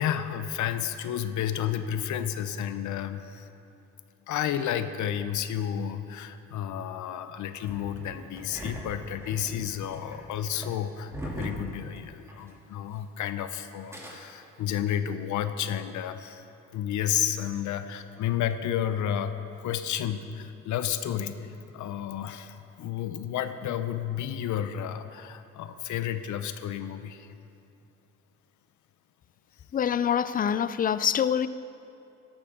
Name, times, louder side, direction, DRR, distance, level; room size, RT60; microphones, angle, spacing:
voice 1, 0.0-3.5 4.3-16.4 16.7-19.3 19.6-21.5 21.7-27.3, left 10 dB, 75° left, 10 dB, 0.7 m, -31 dB
Engine starting, 7.6-12.5 12.8-12.9 13.7-14.1, right 1 dB, 10° right, 2.5 m, -40 dB
voice 2, 29.7-31.5, left 8 dB, 30° left, 15 dB, 0.4 m, -25 dB
13.5 x 11.5 x 3.7 m, 2.6 s
cardioid pair, 90°, 30 cm